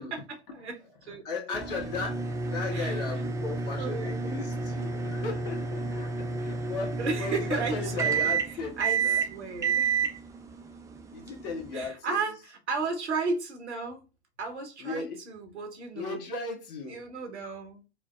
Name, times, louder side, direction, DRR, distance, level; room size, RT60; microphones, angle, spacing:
voice 1, 0.0-1.2 1.5-1.7 2.7-3.2 3.6-4.3 7.0-10.1 11.7-14.0 14.4-16.3 16.9-17.8, right 4 dB, 85° right, 1.3 m, -35 dB
voice 2, 1.2-2.2 2.5-9.2 11.1-12.2 14.8-15.2 15.9-17.0, left 4 dB, 55° left, 1.6 m, -36 dB
sound 1, 1.5-11.9, right 5 dB, 10° right, 0.4 m, -30 dB
4.9 x 2.1 x 2.4 m
hypercardioid pair, 100°, 33 cm